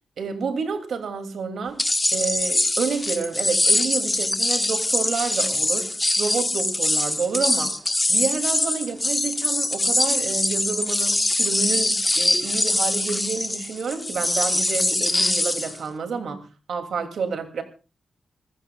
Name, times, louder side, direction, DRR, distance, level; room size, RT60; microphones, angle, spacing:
voice 1, 0.2-1.8 2.1-7.7 8.1-16.4 16.7-17.6, right 5 dB, 80° right, 2.9 m, -29 dB
sound 1, 1.8-15.8, left 2 dB, 15° left, 1.6 m, -23 dB
27.0 x 15.0 x 2.5 m
wide cardioid pair, 145°, 0 cm